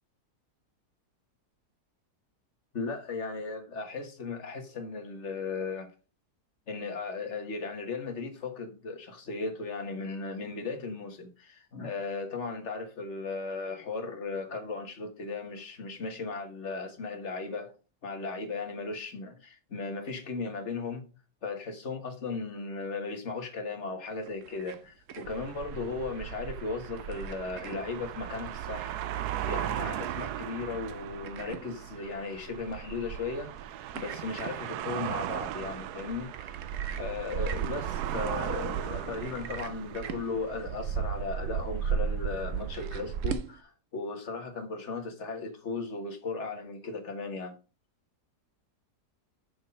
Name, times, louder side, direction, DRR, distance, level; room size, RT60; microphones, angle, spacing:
voice 1, 2.7-5.9 6.7-17.7 18.0-21.1 21.4-29.0 29.4-33.5 33.9-36.6 36.9-47.6, left 4 dB, 45° left, 1.7 m, -36 dB
sound 1, 24.1-43.6, right 7 dB, 60° right, 1.0 m, -46 dB
sound 2, 25.2-43.3, right 9 dB, 75° right, 1.2 m, -36 dB
6.7 x 6.3 x 5.4 m
omnidirectional pair, 1.7 m